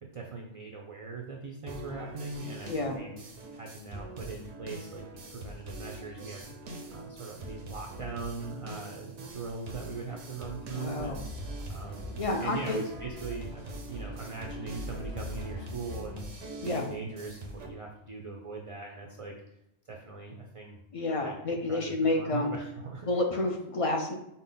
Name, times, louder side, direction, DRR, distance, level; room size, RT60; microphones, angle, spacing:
voice 1, 0.0-3.2 3.5-6.5 6.9-11.2 11.7-19.3 19.9-20.8 21.2-23.1, right 3 dB, 45° right, 1 dB, 0.4 m, -41 dB
sound 1, 1.7-17.7, right 2 dB, 90° right, 1.1 m, -43 dB
voice 2, 2.7-3.0 10.8-11.2 12.2-12.8 16.6-16.9 20.9-22.5 23.1-24.2, left 2 dB, 45° left, 3 dB, 0.4 m, -29 dB
sound 2, 10.9-17.0, left 1 dB, 85° left, 1.6 m, -43 dB
5.3 x 2.2 x 3.8 m, 0.81 s
omnidirectional pair, 1.2 m